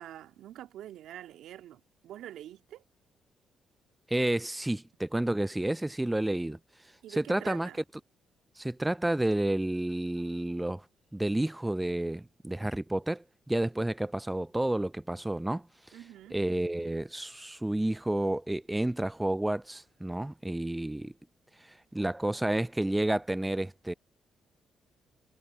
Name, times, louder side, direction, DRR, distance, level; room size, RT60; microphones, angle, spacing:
voice 1, 0.0-2.8 7.0-7.8 15.9-16.4, right 12 dB, 70° right, 2.4 m, -46 dB
voice 2, 4.1-6.6 7.1-7.7 8.6-10.8 11.1-15.7 16.3-21.1 21.6-23.9, right 1 dB, 10° right, 0.5 m, -30 dB
hypercardioid pair, 50°, 0 cm